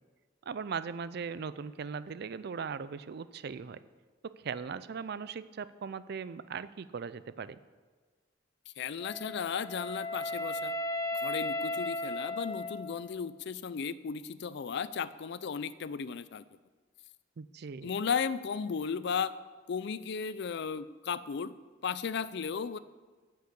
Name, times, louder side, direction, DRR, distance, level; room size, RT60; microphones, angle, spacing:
voice 1, 0.5-3.8 4.2-7.6 17.4-17.9, right 6 dB, 55° right, 15 dB, 0.4 m, -39 dB
voice 2, 8.8-10.7 11.2-16.4 17.8-19.3 19.7-21.5 21.8-22.8, left 6 dB, 65° left, 16 dB, 0.4 m, -35 dB
Wind instrument woodwind instrument, 9.0-13.2, left 1 dB, 15° left, 0.7 m, -35 dB
9.4 x 6.6 x 8.4 m, 1.4 s
head